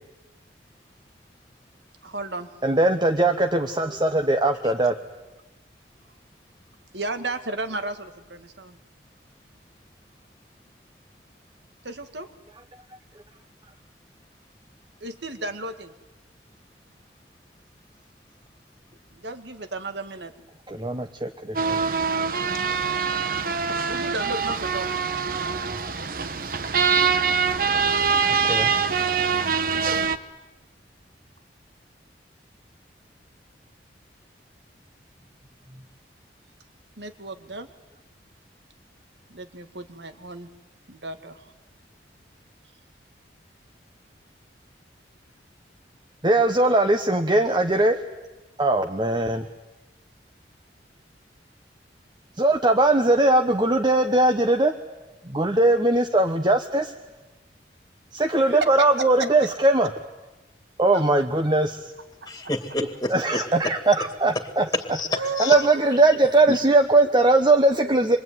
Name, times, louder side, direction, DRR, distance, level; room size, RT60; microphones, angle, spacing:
voice 1, 2.0-2.5 6.9-8.8 11.8-12.3 15.0-15.9 19.1-20.3 23.7-24.9 37.0-37.7 39.3-40.5 40.9-41.5 58.4-59.5 60.9-61.2 62.2-62.3 65.1-66.0, right 3 dB, 80° right, 8 dB, 2.1 m, -33 dB
voice 2, 2.6-4.9 20.7-21.8 28.5-28.7 46.2-48.0 48.6-49.4 52.4-54.7 55.2-56.9 58.1-59.9 60.8-61.8 63.1-64.6 65.4-68.2, right 2 dB, 25° right, 5 dB, 1.1 m, -20 dB
sound 1, 21.6-30.2, right 5 dB, 50° right, 1.1 m, -24 dB
voice 3, 62.2-63.7 64.7-65.7 66.5-66.6, left 2 dB, 20° left, 7 dB, 2.3 m, -29 dB
27.0 x 23.0 x 9.6 m, 1.1 s
head